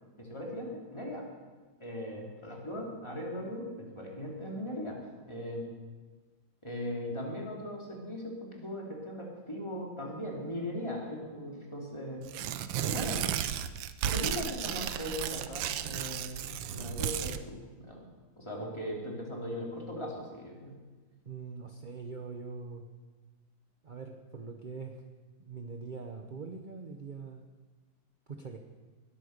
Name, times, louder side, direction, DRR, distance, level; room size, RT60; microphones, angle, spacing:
voice 1, 0.2-1.2 1.8-5.0 5.3-5.7 6.6-12.3 12.8-13.2 14.1-18.1 18.4-20.8, left 1 dB, 15° left, -2 dB, 3.0 m, -39 dB
Tearing, 12.2-17.4, right 10 dB, 80° right, 1.4 m, -34 dB
voice 2, 14.2-14.5 18.6-18.8 21.3-22.9 23.8-25.0 25.4-27.4 28.3-28.6, right 4 dB, 40° right, 4 dB, 0.7 m, -43 dB
19.5 x 9.1 x 6.6 m, 1.3 s
omnidirectional pair, 2.1 m